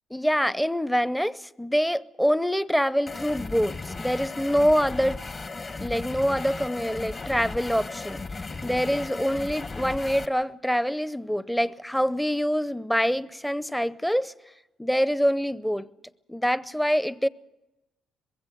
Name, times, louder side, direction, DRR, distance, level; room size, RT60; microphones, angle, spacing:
voice 1, 0.1-5.2 5.8-14.3 14.8-15.9 16.3-17.3, equal, ahead, 0.6 m, -25 dB
sound 1, 3.1-10.3, left 3 dB, 35° left, 1.1 m, -36 dB
21.5 x 16.0 x 9.2 m
cardioid pair, 90°, 0 cm